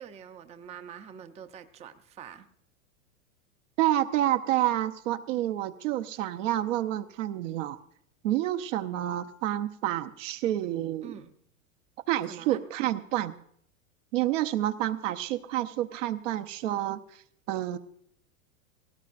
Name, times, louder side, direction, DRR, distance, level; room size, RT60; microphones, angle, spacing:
voice 1, 0.0-2.5 11.0-11.3 12.3-12.6, right 8 dB, 15° right, 8 dB, 0.5 m, -45 dB
voice 2, 3.8-7.8 8.2-11.2 12.1-13.3 14.1-17.0 17.5-17.8, right 13 dB, 65° right, 8 dB, 0.8 m, -29 dB
18.5 x 17.0 x 2.5 m, 0.67 s
hypercardioid pair, 115°, 40 cm